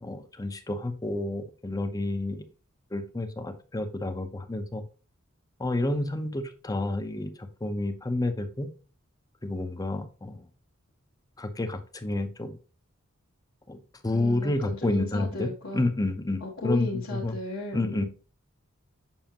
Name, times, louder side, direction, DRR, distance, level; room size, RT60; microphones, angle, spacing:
voice 1, 0.0-2.5 2.9-4.8 5.6-8.7 9.4-10.5 11.4-12.5 13.7-13.8 14.0-17.3 17.7-18.1, left 2 dB, 15° left, 8 dB, 0.8 m, -30 dB
voice 2, 14.1-15.9 16.4-18.1, left 2 dB, 60° left, -4 dB, 1.5 m, -35 dB
7.2 x 6.2 x 2.9 m, 0.34 s
head